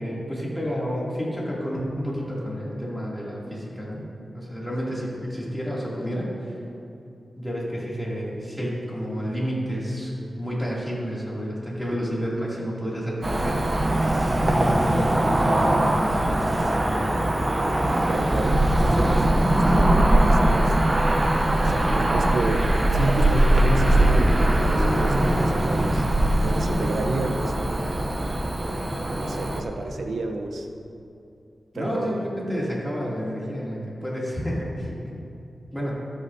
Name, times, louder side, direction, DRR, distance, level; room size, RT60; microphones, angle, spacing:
voice 1, 0.0-4.0 4.3-6.6 7.4-13.8 14.3-17.4 31.7-35.2 35.7-36.1, equal, 5° left, -6 dB, 2.7 m, -30 dB
Cricket / Motor vehicle (road), 13.2-29.6, right 1 dB, 25° right, 0.8 m, -21 dB
voice 2, 18.1-20.7 21.6-30.7 31.7-32.3, right 2 dB, 80° right, 3 dB, 0.9 m, -31 dB
25.0 x 8.9 x 2.8 m, 2.7 s
wide cardioid pair, 160°, 0 cm